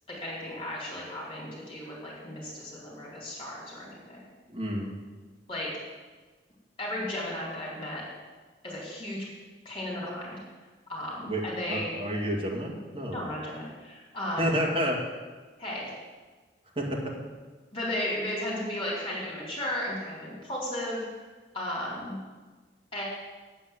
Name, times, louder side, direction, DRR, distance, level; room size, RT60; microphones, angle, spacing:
voice 1, 0.1-4.2 5.5-5.7 6.8-8.0 8.6-9.3 9.6-10.4 10.9-12.0 13.1-14.5 15.6-16.0 17.7-21.1 21.5-22.2 22.9-23.0, left 1 dB, 30° left, -5 dB, 3.9 m, -35 dB
voice 2, 4.5-4.9 11.2-11.4 11.7-13.2 14.4-15.0 16.8-17.0, equal, 30° right, -2 dB, 2.2 m, -29 dB
9.0 x 8.7 x 8.0 m, 1.3 s
head